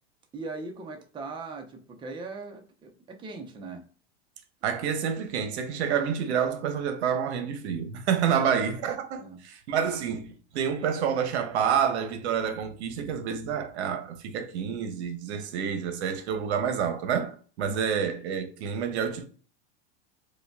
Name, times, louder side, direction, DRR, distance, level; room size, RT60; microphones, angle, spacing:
voice 1, 0.3-3.8 8.2-8.6 9.2-9.4 17.7-18.0, right 3 dB, 15° right, 0.6 m, -39 dB
voice 2, 4.6-19.3, right 7 dB, 75° right, 0.8 m, -28 dB
5.0 x 2.2 x 2.2 m
supercardioid pair, 125°, 33 cm